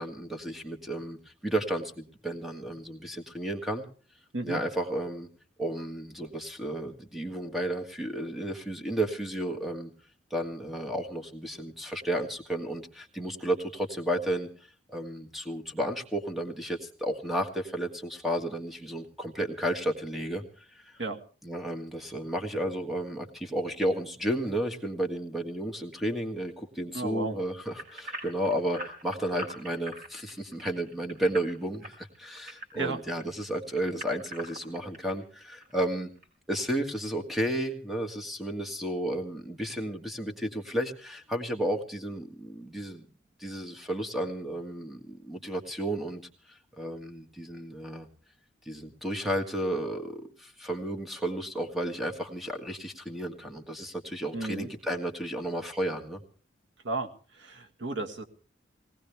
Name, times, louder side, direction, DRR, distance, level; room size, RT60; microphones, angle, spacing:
voice 1, 0.0-3.9 4.4-5.3 5.6-9.9 10.3-14.5 14.9-20.4 20.7-20.9 21.4-36.1 36.5-43.1 43.4-46.2 46.8-48.1 48.7-56.2, right 1 dB, ahead, 4 dB, 1.7 m, -32 dB
voice 2, 26.9-27.4 32.8-33.0 54.3-54.7 56.8-57.1 57.4-58.2, right 2 dB, 75° right, 5 dB, 1.7 m, -33 dB
sound 1, 27.8-33.2 33.7-35.1 35.6-35.7 36.2-36.3, equal, 45° right, 5.8 m, -42 dB
20.5 x 18.5 x 3.4 m, 0.40 s
head